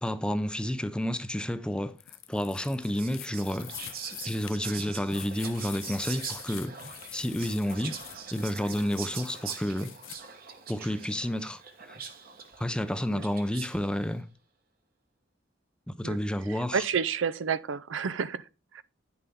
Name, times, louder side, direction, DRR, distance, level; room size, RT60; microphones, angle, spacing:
voice 1, 0.0-2.0 2.3-4.0 4.2-8.0 8.3-9.9 10.7-11.6 11.9-12.0 12.6-14.3 15.9-16.9, equal, 5° left, 0.5 m, -30 dB
sound 1, 2.0-10.2, left 15 dB, 90° left, 0.6 m, -46 dB
Whispering, 2.5-14.0, right 7 dB, 50° right, 1.2 m, -43 dB
voice 2, 16.7-18.4 18.7-18.8, right 6 dB, 75° right, 0.5 m, -29 dB
9.9 x 6.9 x 3.6 m
head